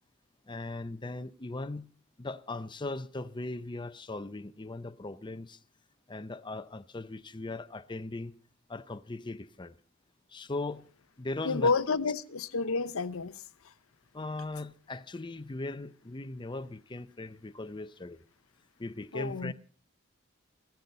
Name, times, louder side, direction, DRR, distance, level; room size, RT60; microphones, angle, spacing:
voice 1, 0.5-1.9 2.2-5.6 6.1-8.3 8.7-9.7 10.3-10.8 11.2-12.0 14.1-18.2 18.8-19.5, left 2 dB, 25° left, 0.6 m, -39 dB
voice 2, 11.4-13.4 19.1-19.5, left 4 dB, 85° left, 0.8 m, -30 dB
16.0 x 13.5 x 5.5 m
head